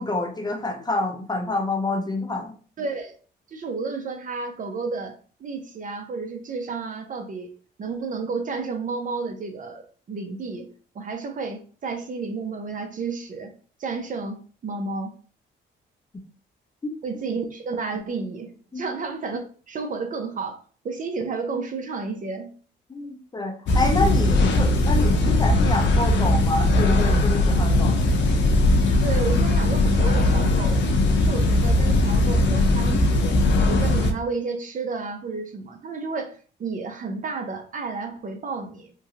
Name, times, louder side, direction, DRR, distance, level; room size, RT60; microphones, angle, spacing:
voice 1, 0.0-2.6 18.7-18.8 22.9-28.0, left 2 dB, 20° left, 3 dB, 0.6 m, -27 dB
voice 2, 2.8-3.2 3.5-5.1 5.4-7.5 7.8-9.8 10.1-10.7 10.9-13.5 13.8-15.1 17.0-20.6 20.8-22.5 29.0-30.8 31.2-33.4 33.7-38.9, right 4 dB, 40° right, 5 dB, 0.6 m, -31 dB
sound 1, 23.7-34.1, left 2 dB, 65° left, 0.6 m, -19 dB
3.0 x 2.7 x 2.4 m, 0.40 s
cardioid pair, 90°, 20 cm